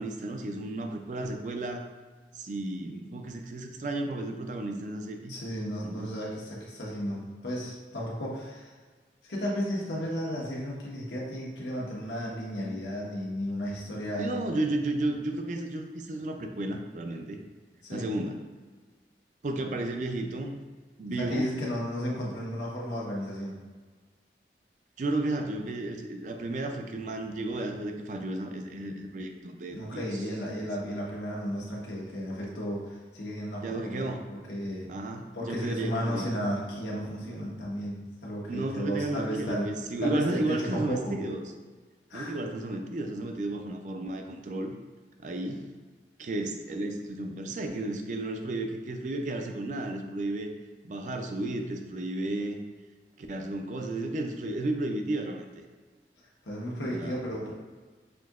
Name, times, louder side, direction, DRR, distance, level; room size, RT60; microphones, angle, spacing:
voice 1, 0.0-1.8 2.3-5.3 5.8-6.1 14.2-17.4 17.9-18.4 19.4-20.6 21.0-21.5 25.0-30.2 33.6-34.2 34.9-36.3 38.5-41.5 42.1-44.7 45.2-45.7 46.2-50.5 50.8-52.6 53.2-55.6 56.8-57.2, right 2 dB, 45° right, 4 dB, 0.3 m, -33 dB
voice 2, 5.3-8.7 9.2-14.4 17.8-18.1 21.2-23.6 29.7-34.9 35.3-39.7 40.0-41.1 42.1-42.4 56.4-57.5, equal, 90° left, -4 dB, 1.1 m, -34 dB
5.8 x 2.7 x 2.4 m, 1.4 s
head